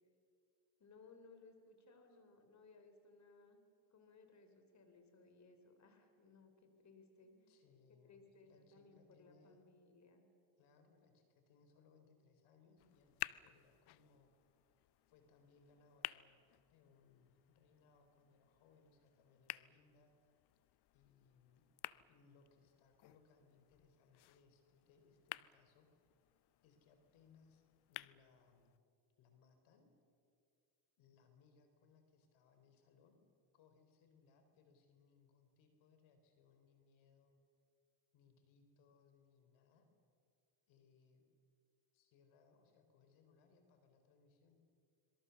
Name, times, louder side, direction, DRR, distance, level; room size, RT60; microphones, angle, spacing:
voice 1, 0.8-3.6 3.9-7.3 8.0-10.3, left 3 dB, 35° left, 7 dB, 3.9 m, -63 dB
voice 2, 7.2-9.6 10.6-14.3 15.1-16.4 16.7-20.1 20.9-21.6 22.0-25.9 26.6-27.6 27.9-28.7 29.2-29.9 31.0-33.2 33.5-37.3 38.1-39.9 40.7-41.3 41.9-44.6, left 5 dB, 75° left, 6 dB, 4.2 m, -70 dB
sound 1, 12.8-28.8, left 17 dB, 55° left, 0.7 m, -53 dB
26.0 x 23.0 x 7.1 m, 2.3 s
cardioid pair, 105°, 49 cm